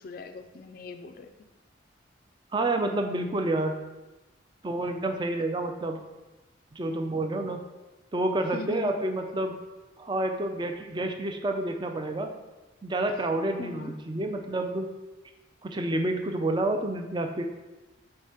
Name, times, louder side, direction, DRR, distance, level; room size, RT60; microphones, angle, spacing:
voice 1, 0.0-1.3 8.5-9.0 13.6-14.0, left 4 dB, 45° left, 7 dB, 0.3 m, -40 dB
voice 2, 2.5-3.8 4.6-6.0 6.7-7.6 8.1-9.6 10.0-12.3 12.8-14.9 15.6-17.4, right 2 dB, 25° right, 5 dB, 0.4 m, -29 dB
4.8 x 4.3 x 5.6 m, 1.1 s
head